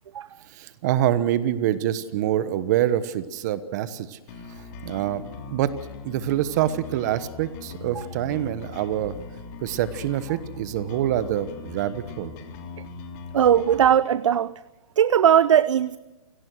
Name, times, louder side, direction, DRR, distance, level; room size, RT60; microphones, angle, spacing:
voice 1, 0.5-4.2 4.8-5.2 5.5-5.7 6.0-9.2 9.6-12.3, right 12 dB, 30° right, 14 dB, 1.2 m, -25 dB
sound 1, 4.3-13.9, left 5 dB, 30° left, 3.0 m, -40 dB
voice 2, 13.3-14.5 15.0-16.0, right 9 dB, 60° right, 17 dB, 0.7 m, -19 dB
28.5 x 18.0 x 6.4 m, 1.2 s
hypercardioid pair, 160°, 18 cm